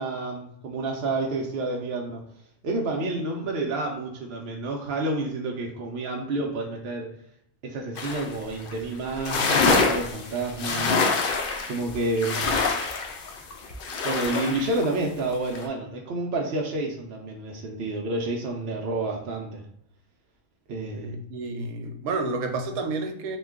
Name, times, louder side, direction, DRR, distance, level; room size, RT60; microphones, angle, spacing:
voice 1, 0.0-2.2 2.6-7.1 7.6-11.0 11.7-12.5 14.0-19.6 20.7-21.2, right 2 dB, 65° right, 0.6 m, -29 dB
sound 1, 8.0-8.4 8.7-8.8 9.1-14.9 15.3-15.7, left 4 dB, 75° left, 0.5 m, -25 dB
voice 2, 20.9-23.4, right 3 dB, 85° right, 1.0 m, -30 dB
3.0 x 2.2 x 3.4 m
omnidirectional pair, 1.5 m